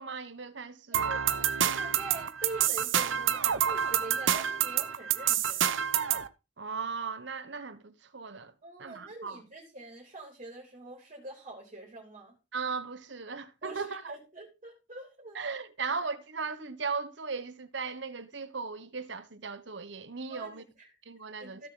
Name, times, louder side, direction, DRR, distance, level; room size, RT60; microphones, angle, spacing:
voice 1, 0.0-1.1 6.6-8.5 8.8-9.4 12.5-14.1 15.3-20.6 21.1-21.7, right 5 dB, 65° right, 1.2 m, -37 dB
voice 2, 0.9-5.7 8.6-12.4 13.6-15.4 20.3-20.9 21.4-21.7, right 2 dB, 35° right, 3.1 m, -45 dB
sound 1, 0.9-6.3, right 9 dB, 85° right, 0.9 m, -28 dB
15.0 x 6.9 x 3.9 m
head